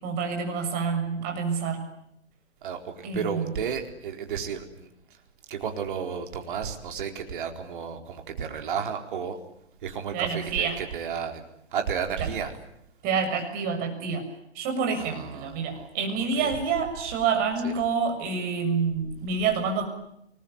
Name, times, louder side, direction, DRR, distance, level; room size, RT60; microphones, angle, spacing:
voice 1, 0.0-1.9 3.0-3.5 10.1-10.8 13.0-14.3 14.5-19.9, right 5 dB, 25° right, 4 dB, 6.7 m, -27 dB
voice 2, 2.6-4.9 5.5-9.4 9.8-11.4 11.7-12.5 15.0-15.9 16.4-16.5 17.6-17.7, right 7 dB, 45° right, 5 dB, 4.3 m, -32 dB
28.5 x 21.0 x 9.6 m, 0.78 s
figure-of-eight pair, 130°, 35 cm